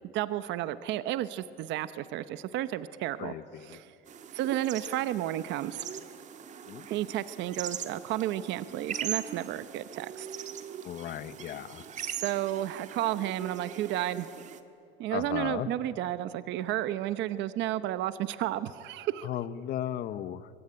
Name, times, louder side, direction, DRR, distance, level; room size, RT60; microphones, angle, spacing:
voice 1, 0.1-3.3 3.7-3.9 4.3-5.9 6.9-10.3 12.0-14.3 15.0-19.3, right 13 dB, 65° right, 13 dB, 0.9 m, -32 dB
voice 2, 3.2-3.8 6.6-6.9 10.8-11.9 15.1-15.7 19.2-20.5, left 11 dB, 50° left, 14 dB, 1.0 m, -36 dB
sound 1, 4.1-14.6, right 8 dB, 35° right, 1.5 m, -41 dB
24.0 x 23.5 x 9.8 m, 3.0 s
cardioid pair, 160°, 20 cm